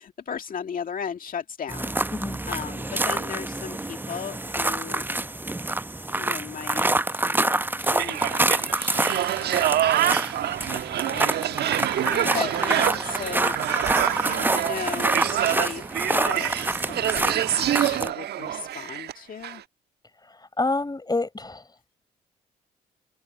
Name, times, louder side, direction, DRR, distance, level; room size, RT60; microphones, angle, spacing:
voice 1, 0.0-1.9 2.5-5.0 6.1-9.9 11.1-11.7 12.0-13.8 14.0-16.8 17.0-19.6, left 7 dB, 45° left, 2.0 m, -36 dB
sound 1, 1.7-18.1, right 2 dB, 10° right, 0.8 m, -27 dB
sound 2, 8.0-19.1 19.4-19.6, right 12 dB, 60° right, 1.3 m, -26 dB
voice 2, 20.3-21.6, left 2 dB, 20° left, 5.0 m, -28 dB
open air
hypercardioid pair, 45°, 19 cm